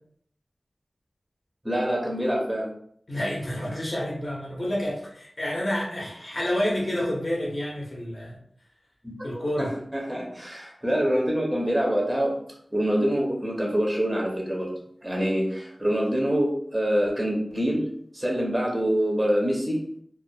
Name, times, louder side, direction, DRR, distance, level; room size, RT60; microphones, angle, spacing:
voice 1, 1.6-2.7 9.0-9.2 9.6-12.3 12.7-14.7 15.0-17.9 18.1-19.8, equal, 10° right, -2 dB, 0.5 m, -25 dB
voice 2, 3.1-8.4 9.2-9.7, left 1 dB, 40° left, -4 dB, 0.6 m, -29 dB
2.2 x 2.1 x 2.6 m, 0.64 s
wide cardioid pair, 80°, 0 cm